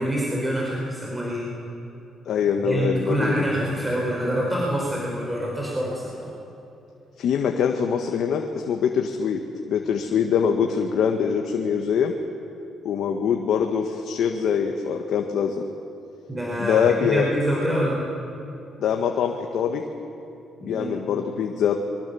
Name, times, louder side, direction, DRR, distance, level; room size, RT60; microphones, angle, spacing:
voice 1, 0.0-1.5 2.6-6.3 16.3-18.0 20.6-20.9, right 1 dB, 15° right, -3 dB, 5.1 m, -26 dB
voice 2, 2.2-3.3 7.2-9.4 9.7-12.1 12.8-15.6 16.6-17.3 18.8-19.8 20.6-21.8, left 7 dB, 70° left, 3 dB, 1.6 m, -23 dB
25.5 x 23.5 x 7.2 m, 2.9 s
cardioid pair, 90°, 0 cm